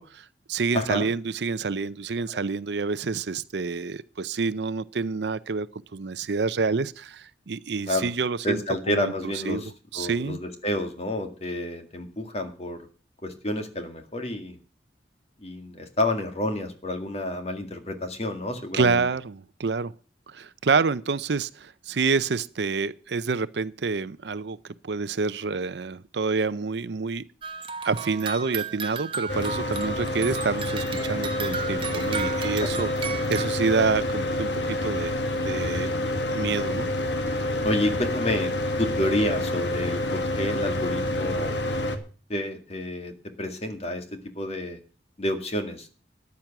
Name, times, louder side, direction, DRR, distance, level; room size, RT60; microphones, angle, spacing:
voice 1, 0.0-8.6 8.9-9.1 9.5-10.4 18.7-19.9 20.3-24.6 24.8-27.2 27.8-35.2 35.4-35.9 36.3-36.9, right 4 dB, 65° right, 0.6 m, -28 dB
voice 2, 0.7-1.1 2.3-2.4 7.9-8.1 8.4-12.9 13.2-14.6 15.4-19.0 32.6-32.7 37.6-41.6 42.3-44.8 45.2-45.9, left 1 dB, 35° left, 2.0 m, -29 dB
sound 1, 27.4-33.5, right 5 dB, 30° right, 0.9 m, -34 dB
Mechanical fan, 29.3-42.0, left 1 dB, 75° left, 1.7 m, -28 dB
13.5 x 9.5 x 5.9 m
head